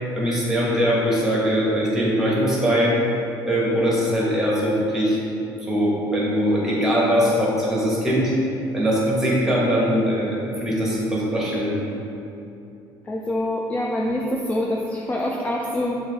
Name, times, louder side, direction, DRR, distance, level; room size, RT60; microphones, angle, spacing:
voice 1, 0.2-3.0 3.4-5.2 5.6-8.3 8.7-11.8, equal, 5° right, -5 dB, 1.2 m, -21 dB
voice 2, 13.0-16.0, left 1 dB, 15° left, -2 dB, 0.4 m, -25 dB
6.4 x 2.6 x 3.2 m, 2.8 s
cardioid pair, 120°, 9 cm